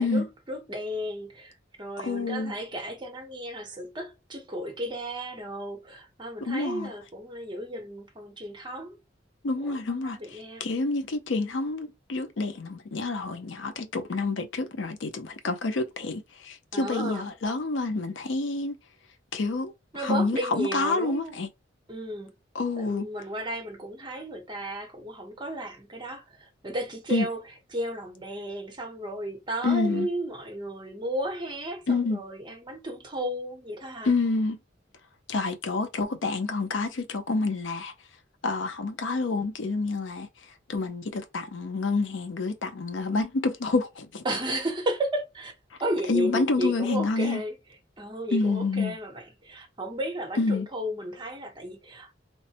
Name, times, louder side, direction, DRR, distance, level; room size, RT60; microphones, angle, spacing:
voice 1, 0.0-9.0 9.6-10.7 16.7-17.3 19.9-21.4 21.9-22.3 22.8-27.4 27.7-34.1 44.2-45.5 45.8-47.6 48.0-52.1, right 1 dB, 25° right, 0.8 m, -34 dB
voice 2, 2.0-2.5 6.4-6.9 9.4-18.8 19.3-19.7 20.0-21.5 22.5-23.1 27.1-27.3 29.6-30.1 31.9-32.2 34.0-34.6 35.3-37.9 38.4-40.3 40.7-44.2 46.1-47.4 48.3-49.0 50.4-50.7, left 3 dB, 75° left, 0.5 m, -28 dB
3.1 x 2.1 x 2.7 m
head